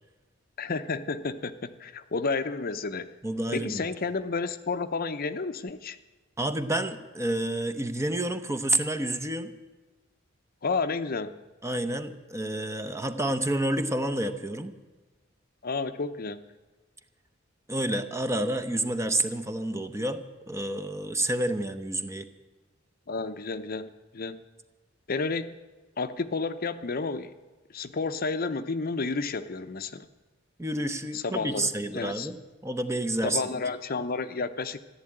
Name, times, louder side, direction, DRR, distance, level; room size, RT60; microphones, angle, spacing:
voice 1, 0.6-3.1 3.5-6.0 10.6-11.4 15.6-16.4 23.1-24.4 25.1-25.5 26.0-27.3 27.7-30.1 31.1-32.3 33.2-34.8, left 4 dB, 50° left, 10 dB, 0.7 m, -31 dB
voice 2, 3.2-3.9 6.4-9.5 11.6-14.7 17.7-22.3 30.6-33.4, right 1 dB, 15° right, 9 dB, 0.8 m, -29 dB
14.5 x 11.0 x 8.8 m, 1.2 s
head